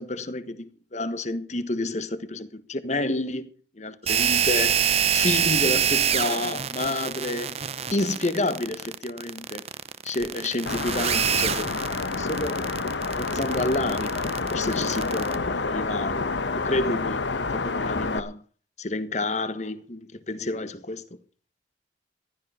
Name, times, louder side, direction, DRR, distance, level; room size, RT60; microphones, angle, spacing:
voice 1, 0.0-3.5 3.8-4.8 5.1-7.6 7.9-9.6 10.0-11.7 12.2-12.7 13.2-16.3 16.6-18.4 18.8-21.2, left 2 dB, 40° left, 1.4 m, -29 dB
sound 1, 4.1-15.4, right 8 dB, 35° right, 0.6 m, -26 dB
sound 2, 10.7-18.2, left 3 dB, 80° left, 1.1 m, -28 dB
15.5 x 12.5 x 5.0 m
head